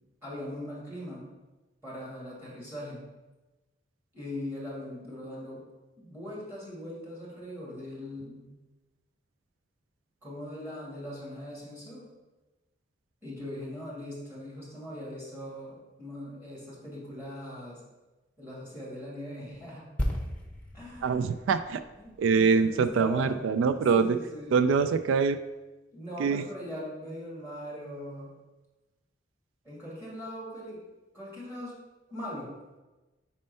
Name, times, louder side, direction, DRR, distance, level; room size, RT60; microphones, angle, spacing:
voice 1, 0.2-1.3 1.8-3.0 4.1-5.6 6.0-8.5 10.2-12.1 13.2-17.8 18.4-19.9 20.7-21.3 22.0-23.4 23.9-24.6 25.9-28.3 29.6-30.8 31.1-31.8 32.1-32.5, left 1 dB, 10° right, -6 dB, 2.0 m, -40 dB
sound 1, 20.0-23.6 23.9-24.1, equal, 5° left, 0.8 m, -36 dB
voice 2, 21.0-21.8 22.2-24.2 24.5-25.4 26.2-26.4, right 5 dB, 90° right, 11 dB, 0.3 m, -24 dB
4.3 x 4.3 x 5.4 m, 1.1 s
head